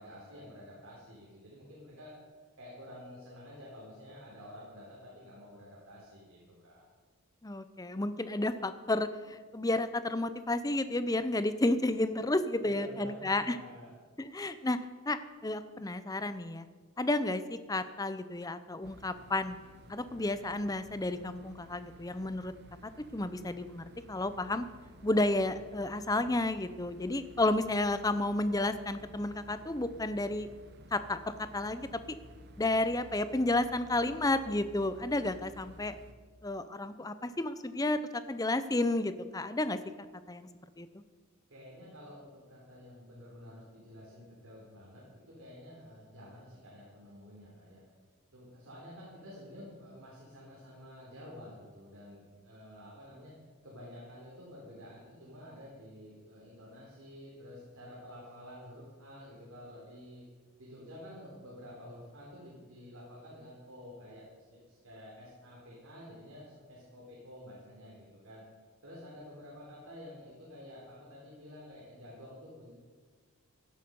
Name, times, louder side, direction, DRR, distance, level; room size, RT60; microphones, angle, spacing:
voice 1, 0.0-2.1 2.6-6.8 12.6-14.0 41.5-47.8 48.3-53.3 53.6-60.2 60.6-64.2 64.5-68.4 68.8-72.7, left 1 dB, 75° right, -5 dB, 4.0 m, -50 dB
voice 2, 7.4-13.6 14.2-14.8 15.1-16.7 17.0-19.6 19.9-22.5 22.8-24.7 25.0-30.5 30.9-32.2 32.6-36.0 36.4-39.8 40.3-40.5 40.8-40.9, left 2 dB, 15° left, 12 dB, 0.6 m, -32 dB
sound 1, 18.8-36.1, equal, 50° right, 0.9 m, -54 dB
16.0 x 11.5 x 5.4 m, 1.5 s
head